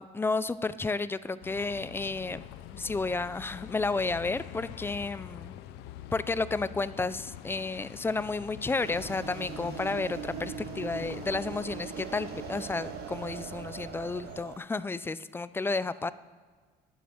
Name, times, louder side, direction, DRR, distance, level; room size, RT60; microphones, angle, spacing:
voice 1, 0.0-2.4 2.7-5.6 6.1-16.1, left 3 dB, 15° left, 16 dB, 0.3 m, -32 dB
Bus, 1.4-14.4, left 12 dB, 90° left, 0.5 m, -45 dB
sound 1, 8.8-14.6, right 11 dB, 70° right, 0.5 m, -41 dB
11.5 x 6.0 x 7.1 m, 1.5 s
cardioid pair, 110°, 17 cm